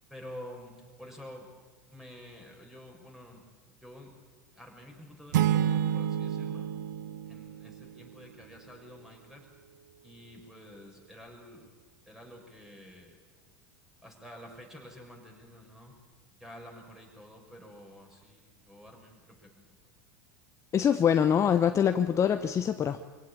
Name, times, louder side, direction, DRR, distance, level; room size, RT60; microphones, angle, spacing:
voice 1, 0.1-1.5 1.9-4.2 4.5-6.7 7.2-9.5 10.0-11.7 12.1-13.2 14.0-16.0 16.3-19.7, left 1 dB, 5° right, 1 dB, 6.6 m, -49 dB
sound 1, 5.3-8.1, right 10 dB, 70° right, 1.0 m, -29 dB
voice 2, 20.7-23.0, left 8 dB, 30° left, 9 dB, 1.0 m, -24 dB
25.0 x 17.0 x 8.8 m, 1.4 s
hypercardioid pair, 90°, 10 cm